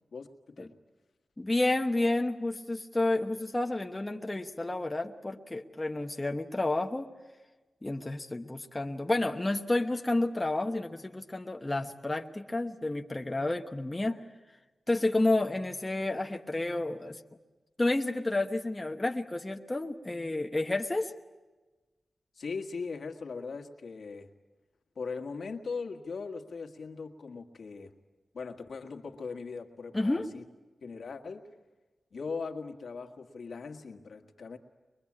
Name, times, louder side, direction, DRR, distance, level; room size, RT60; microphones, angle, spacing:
voice 1, 0.1-0.7 22.3-24.3 24.9-27.9 28.3-30.4 30.8-31.5 32.1-34.6, left 4 dB, 75° left, 4 dB, 1.7 m, -39 dB
voice 2, 1.4-7.1 7.8-14.2 14.9-17.2 17.8-21.1 29.9-30.3, left 2 dB, 20° left, 3 dB, 1.0 m, -30 dB
23.0 x 22.0 x 8.6 m, 1.2 s
wide cardioid pair, 110°, 0 cm